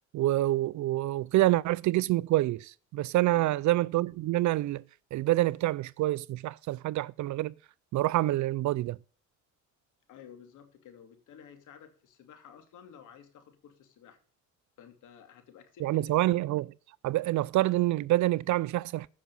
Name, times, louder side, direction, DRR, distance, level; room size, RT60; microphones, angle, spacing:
voice 1, 0.1-4.8 5.1-7.5 7.9-9.0 15.8-16.7 17.0-19.1, right 16 dB, 70° right, 0.5 m, -27 dB
voice 2, 10.1-14.2 14.8-16.6, left 8 dB, 85° left, 2.9 m, -53 dB
14.5 x 6.2 x 5.5 m
cardioid pair, 90°, 30 cm